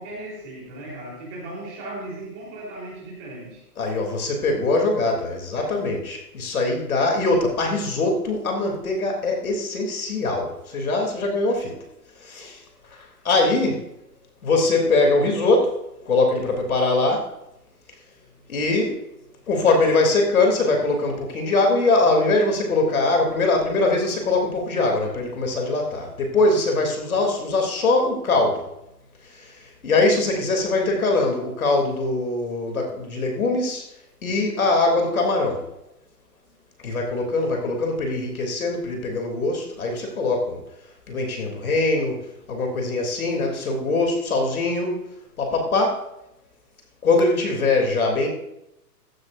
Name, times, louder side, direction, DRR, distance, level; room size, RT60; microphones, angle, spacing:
voice 1, 0.0-3.6, right 1 dB, 20° right, -4 dB, 4.1 m, -36 dB
voice 2, 3.8-11.8 12.2-12.6 13.2-13.8 14.4-15.8 16.0-17.3 18.5-19.0 19.5-28.7 29.4-29.5 29.8-33.8 34.2-35.7 36.8-40.6 41.1-45.1 45.4-46.1 47.0-48.3, left 2 dB, 60° left, 2 dB, 3.3 m, -22 dB
15.0 x 13.0 x 2.7 m, 0.86 s
hypercardioid pair, 165°, 48 cm